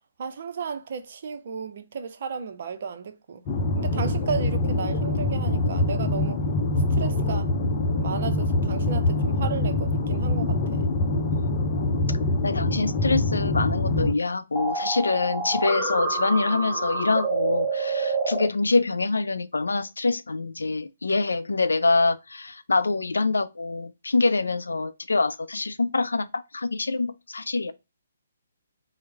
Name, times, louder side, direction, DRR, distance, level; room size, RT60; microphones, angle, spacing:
voice 1, 0.2-3.4 3.8-6.4 6.9-7.5 8.0-10.9, right 6 dB, 50° right, 0.6 m, -34 dB
sound 1, 3.5-14.1, left 2 dB, 30° left, 0.7 m, -24 dB
voice 2, 12.4-27.7, left 3 dB, 75° left, 0.4 m, -25 dB
sound 2, 14.6-18.5, right 3 dB, 5° right, 0.9 m, -27 dB
4.5 x 2.1 x 3.3 m
figure-of-eight pair, 135°, 0 cm